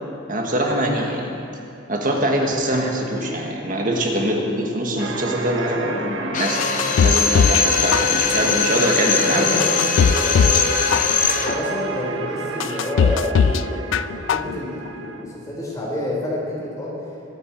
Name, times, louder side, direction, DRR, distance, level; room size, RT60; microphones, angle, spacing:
voice 1, 0.3-1.4 1.9-9.5, right 1 dB, 45° right, 1 dB, 1.6 m, -23 dB
sound 1, 5.0-15.2, right 4 dB, 90° right, 1.1 m, -31 dB
Drill, 6.3-11.6, left 6 dB, 45° left, 0.9 m, -21 dB
sound 2, 6.6-7.7 7.9-8.5 9.0-9.1 9.6-10.6 10.9-11.5 12.0-12.1 12.6-13.6 13.9-14.5 14.9-15.0, left 6 dB, 85° left, 0.3 m, -19 dB
voice 2, 9.2-10.7 11.2-17.2, left 1 dB, 20° left, -5 dB, 3.8 m, -28 dB
21.0 x 8.9 x 4.6 m, 2.8 s
head